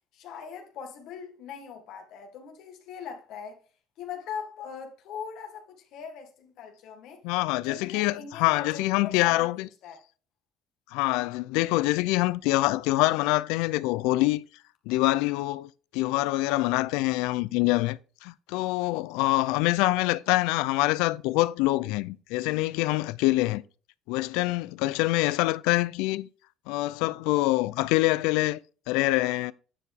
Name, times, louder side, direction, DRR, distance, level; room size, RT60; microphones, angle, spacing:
voice 1, 0.1-3.6 4.0-7.2 7.6-10.0, left 7 dB, 70° left, 1.9 m, -41 dB
voice 2, 7.2-9.7 10.9-14.4 14.9-23.6 24.1-26.3 26.7-28.6 28.9-29.5, left 19 dB, 90° left, 0.4 m, -25 dB
9.7 x 4.9 x 3.6 m
cardioid pair, 110°, 0 cm